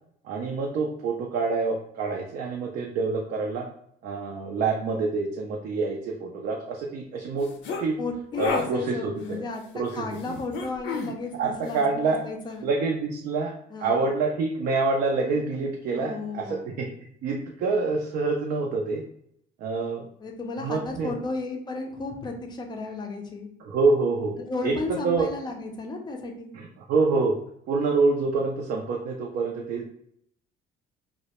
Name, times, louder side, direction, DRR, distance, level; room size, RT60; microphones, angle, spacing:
voice 1, 0.2-3.7 4.0-7.5 7.8-8.0 8.4-9.4 9.7-10.3 11.4-12.2 12.6-13.5 13.8-16.9 17.2-19.0 19.6-20.0 20.6-21.1 23.6-25.3 26.5-27.3 27.7-29.9, right 4 dB, 55° right, 0 dB, 0.4 m, -26 dB
sound 1, 7.4-7.8 8.3-8.7 10.5-11.1, left 4 dB, 75° left, 0.5 m, -29 dB
voice 2, 8.0-12.6 13.7-14.1 15.9-16.7 20.2-23.5 24.5-26.5, left 3 dB, 25° left, 2 dB, 0.4 m, -34 dB
2.1 x 2.0 x 2.8 m, 0.70 s
cardioid pair, 110°, 19 cm